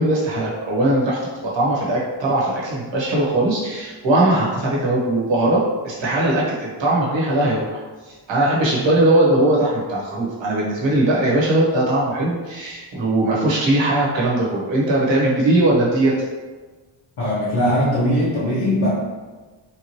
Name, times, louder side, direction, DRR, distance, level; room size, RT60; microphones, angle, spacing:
voice 1, 0.0-16.1, right 1 dB, 65° right, -5 dB, 1.1 m, -20 dB
voice 2, 17.2-18.9, equal, 80° left, -10 dB, 1.4 m, -20 dB
3.6 x 2.9 x 2.9 m, 1.3 s
wide cardioid pair, 170°, 48 cm